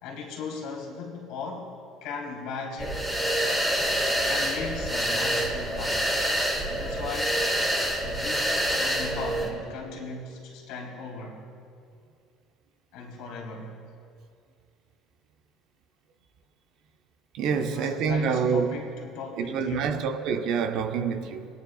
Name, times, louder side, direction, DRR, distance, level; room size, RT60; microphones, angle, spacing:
voice 1, 0.0-3.1 4.2-6.1 6.7-7.5 8.0-11.5 12.9-13.7 17.5-20.0, left 4 dB, 80° left, 2.5 m, -37 dB
sound 1, 2.8-9.5, right 1 dB, 10° right, 1.8 m, -26 dB
voice 2, 17.3-18.8 19.4-21.5, right 6 dB, 65° right, 0.7 m, -27 dB
22.0 x 9.7 x 2.4 m
cardioid pair, 130°, 0 cm